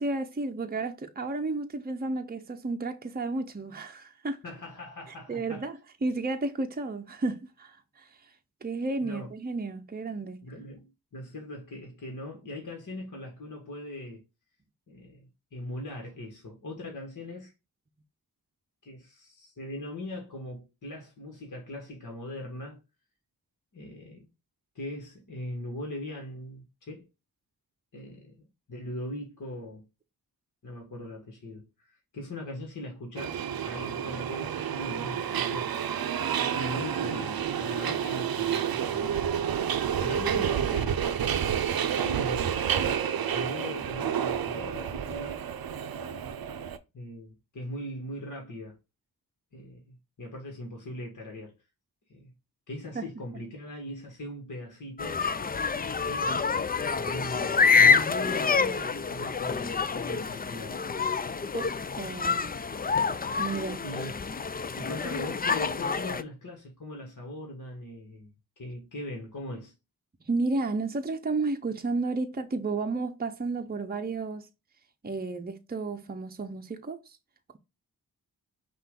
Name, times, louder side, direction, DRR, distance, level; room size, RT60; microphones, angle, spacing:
voice 1, 0.0-4.4 5.3-8.1 8.6-10.4 52.9-53.1 53.3-53.4 61.5-61.7 62.0-62.5 63.4-63.9 70.3-74.5 75.0-77.0, right 3 dB, 25° right, 0.7 m, -32 dB
voice 2, 4.4-5.7 9.0-9.3 10.4-14.2 14.9-17.5 18.8-22.8 23.7-24.3 24.7-27.1 27.9-28.4 28.7-29.8 30.6-35.9 36.2-39.5 39.7-41.1 42.0-42.6 43.3-45.4 46.9-48.8 49.5-51.5 52.1-52.3 52.7-55.2 56.0-56.4 57.0-60.8 63.8-64.2 64.7-69.7, left 1 dB, 55° left, 1.5 m, -40 dB
Subway metro underground, 33.2-46.8, right 8 dB, 70° right, 0.6 m, -29 dB
sound 1, 55.0-66.2, left 5 dB, 25° left, 0.4 m, -27 dB
5.6 x 2.5 x 3.7 m
cardioid pair, 50°, 37 cm